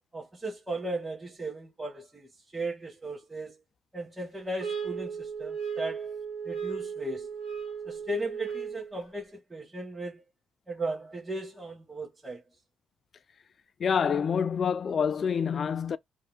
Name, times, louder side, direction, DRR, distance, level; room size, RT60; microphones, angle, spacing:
voice 1, 0.1-3.6 3.9-6.1 6.4-7.3 7.8-10.2 10.7-12.4, right 2 dB, 10° right, 1.2 m, -36 dB
sound 1, 4.6-8.9, right 6 dB, 65° right, 1.8 m, -36 dB
voice 2, 13.8-16.0, left 7 dB, 50° left, 0.3 m, -27 dB
2.7 x 2.1 x 3.3 m
cardioid pair, 90°, 0 cm